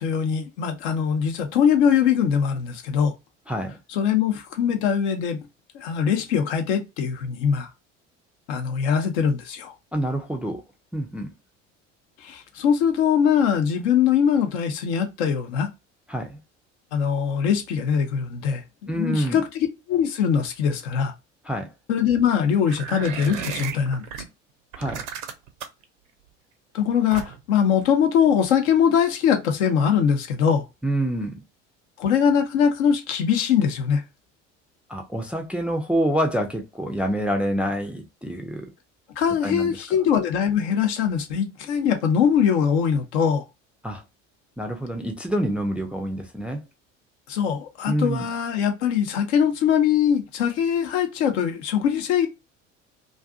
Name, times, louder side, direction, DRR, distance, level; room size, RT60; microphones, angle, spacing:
voice 1, 0.0-3.1 3.9-5.4 5.7-7.7 8.5-9.7 12.2-15.7 16.9-21.1 21.9-24.0 26.7-30.6 32.0-34.0 39.2-43.4 47.3-52.3, left 7 dB, 65° left, 0.8 m, -22 dB
voice 2, 3.5-3.8 9.9-10.6 10.9-11.3 16.1-16.4 18.9-19.4 21.5-21.7 24.8-25.0 30.8-31.4 34.9-38.7 39.4-39.7 43.8-44.0 44.6-46.6 47.9-48.3, right 1 dB, 5° right, 0.4 m, -26 dB
sound 1, 22.7-24.2 24.7-25.8 27.1-27.5, right 8 dB, 65° right, 0.7 m, -34 dB
2.5 x 2.4 x 2.4 m
figure-of-eight pair, 65°, 38 cm